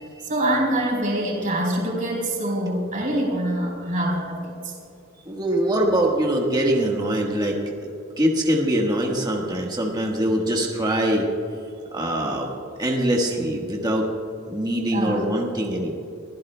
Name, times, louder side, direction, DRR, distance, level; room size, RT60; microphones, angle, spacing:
voice 1, 0.2-4.7 14.9-15.2, right 1 dB, 40° right, -1 dB, 4.0 m, -25 dB
voice 2, 5.3-7.5 7.8-11.3 11.9-12.5 12.8-14.1 14.5-15.9, right 1 dB, 20° right, -1 dB, 1.3 m, -23 dB
24.5 x 16.0 x 2.2 m, 2.5 s
head